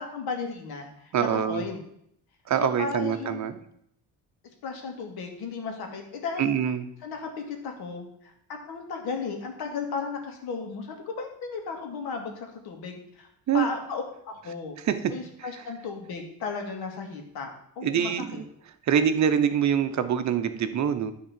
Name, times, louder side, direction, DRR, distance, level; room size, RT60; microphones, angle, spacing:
voice 1, 0.0-1.8 2.6-3.5 4.6-6.6 7.0-8.3 8.7-13.3 13.5-14.8 15.1-18.4, left 5 dB, 85° left, 3 dB, 2.0 m, -35 dB
voice 2, 1.1-1.6 2.5-3.6 6.4-6.9 13.5-13.7 14.9-15.0 15.4-15.5 17.8-18.4 18.9-21.1, right 8 dB, 50° right, 10 dB, 0.8 m, -25 dB
10.5 x 3.7 x 7.4 m, 0.71 s
cardioid pair, 140°, 37 cm